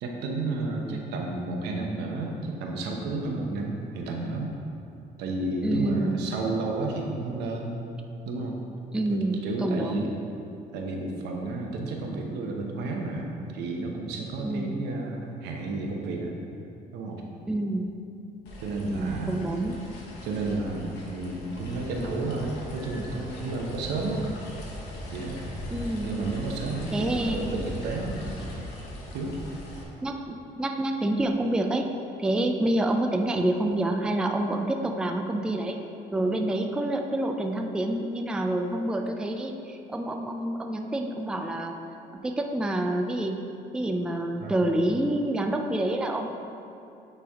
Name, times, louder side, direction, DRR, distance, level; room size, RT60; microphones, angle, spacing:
voice 1, 0.0-4.5 5.2-7.8 8.3-8.6 9.1-10.1 10.7-16.3 16.9-17.2 18.6-19.4 20.2-24.2 25.1-25.7 26.0-28.2 29.1-29.4 44.4-44.5, right 2 dB, 85° right, 1 dB, 0.8 m, -31 dB
voice 2, 5.6-6.3 8.9-10.2 14.4-14.8 17.5-17.9 18.8-19.8 25.7-26.1 26.9-27.6 30.0-31.9 32.2-35.8 36.1-41.7 42.2-43.4 43.7-46.3, right 1 dB, 5° right, 3 dB, 0.3 m, -27 dB
sound 1, 18.5-29.8, left 1 dB, 80° left, 1.1 m, -39 dB
8.8 x 3.4 x 3.5 m, 2.7 s
cardioid pair, 110°, 17 cm